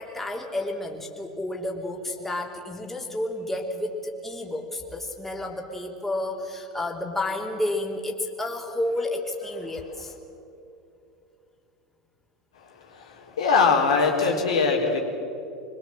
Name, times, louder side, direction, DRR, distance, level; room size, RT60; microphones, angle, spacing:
voice 1, 0.0-10.1, left 1 dB, 10° left, 0 dB, 3.4 m, -31 dB
voice 2, 12.9-15.0, left 4 dB, 70° left, 0 dB, 4.0 m, -22 dB
25.0 x 22.5 x 7.6 m, 2.7 s
figure-of-eight pair, 80°, 3 cm